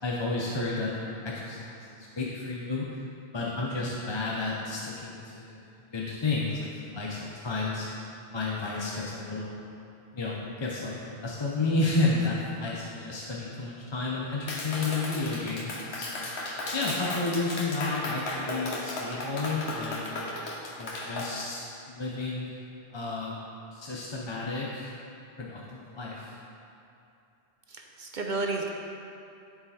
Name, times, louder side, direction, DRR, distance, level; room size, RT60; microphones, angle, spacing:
voice 1, 0.0-3.0 3.3-5.6 5.9-7.9 8.3-9.6 10.1-16.3 16.7-20.1 20.7-22.6 22.9-23.4 23.7-25.0 25.4-26.3, left 3 dB, 30° left, -4 dB, 0.6 m, -31 dB
Clapping, 14.5-21.3, left 2 dB, 85° left, 1.3 m, -35 dB
voice 2, 27.7-28.7, right 3 dB, 50° right, 1 dB, 0.8 m, -32 dB
11.0 x 4.8 x 4.2 m, 2.7 s
omnidirectional pair, 1.1 m